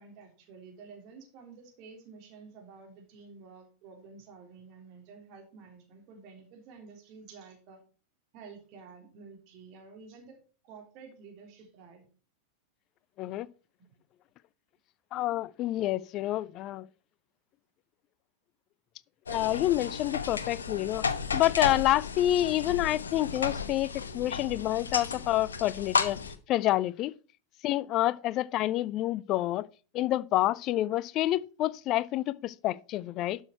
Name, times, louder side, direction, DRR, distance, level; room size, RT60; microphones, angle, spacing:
voice 1, 0.0-7.8 8.3-10.4 10.6-12.0 13.8-13.9, right 5 dB, 40° right, 3.3 m, -51 dB
voice 2, 15.1-16.9 19.3-21.1 21.3-26.2 26.5-27.1 27.6-29.7 29.9-33.4, left 14 dB, 35° left, 0.5 m, -28 dB
sound 1, 19.3-26.4, left 5 dB, 70° left, 1.0 m, -33 dB
12.0 x 6.4 x 4.4 m
figure-of-eight pair, 90°, 0 cm